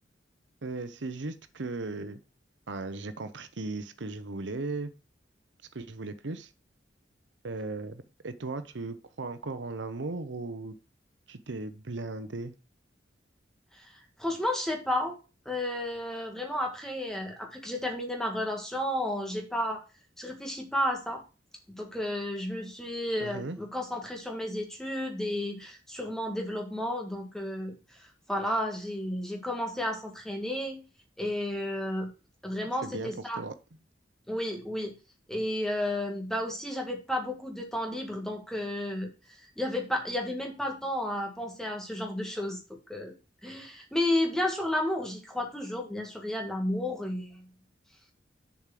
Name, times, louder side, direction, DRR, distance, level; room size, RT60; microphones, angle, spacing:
voice 1, 0.6-2.2 2.7-4.9 5.7-6.5 7.4-10.8 11.3-12.5 23.2-23.6 32.8-33.5, right 3 dB, 85° right, 11 dB, 0.9 m, -37 dB
voice 2, 14.2-15.2 15.4-19.8 20.2-21.2 21.7-30.8 31.2-32.1 32.4-33.4 34.3-34.9 35.3-39.1 39.6-43.1 43.4-47.5, left 1 dB, 5° left, 2 dB, 1.7 m, -32 dB
7.3 x 4.9 x 5.8 m, 0.31 s
head